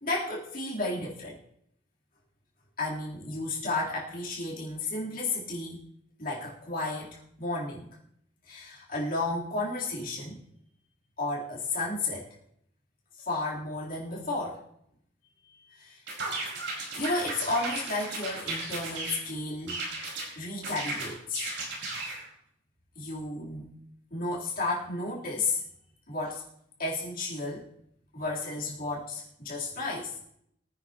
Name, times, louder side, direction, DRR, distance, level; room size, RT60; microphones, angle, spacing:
voice 1, 0.0-1.4 2.8-5.8 6.2-7.9 8.5-10.4 11.2-12.3 13.3-14.6 15.7-16.0 16.9-19.8 20.4-21.9 23.0-23.7 24.1-25.6 26.1-26.4 26.8-27.7 28.1-30.1, left 2 dB, 45° left, -5 dB, 3.7 m, -33 dB
sound 1, 16.1-19.2 19.7-20.3 20.6-22.2, right 2 dB, 70° right, 4.6 m, -35 dB
24.0 x 9.4 x 3.0 m, 0.71 s
head